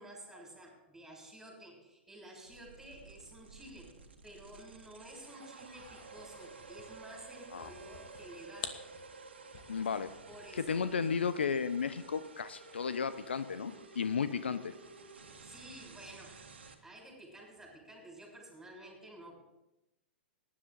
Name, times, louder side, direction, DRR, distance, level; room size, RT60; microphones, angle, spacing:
voice 1, 0.0-8.8 10.3-11.0 15.4-16.4 16.8-19.4, right 1 dB, 5° right, -2 dB, 6.2 m, -52 dB
sound 1, 2.5-16.7, right 4 dB, 75° right, 1.8 m, -53 dB
sound 2, 5.6-11.0, left 8 dB, 50° left, 1.3 m, -50 dB
voice 2, 9.7-10.1 10.5-14.7, left 6 dB, 75° left, 13 dB, 0.6 m, -34 dB
18.5 x 11.0 x 3.9 m, 0.94 s
figure-of-eight pair, 105°, 6 cm